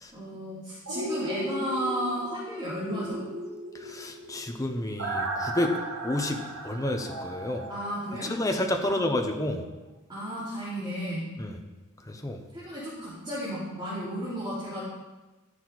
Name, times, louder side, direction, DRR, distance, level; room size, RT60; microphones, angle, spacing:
voice 1, 0.1-3.2 7.7-8.3 8.8-9.0 10.1-11.2 12.5-14.8, equal, 20° right, -11 dB, 3.5 m, -33 dB
sound 1, 0.9-8.7 9.1-9.2, right 1 dB, 75° right, 1.6 m, -36 dB
voice 2, 3.8-5.8 6.0-7.6 8.3-9.6 11.4-11.6 12.1-12.4, left 1 dB, 15° left, 4 dB, 1.1 m, -30 dB
15.0 x 6.9 x 4.2 m, 1.1 s
head